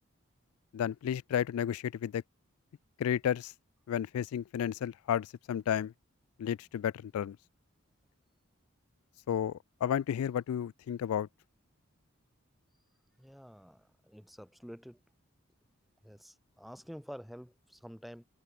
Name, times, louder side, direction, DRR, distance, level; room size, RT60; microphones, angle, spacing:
voice 1, 0.7-2.2 3.0-3.5 3.9-5.9 6.4-7.4 9.3-11.3, left 9 dB, 85° left, 0.3 m, -32 dB
voice 2, 13.2-15.0 16.0-18.2, equal, ahead, 1.3 m, -49 dB
head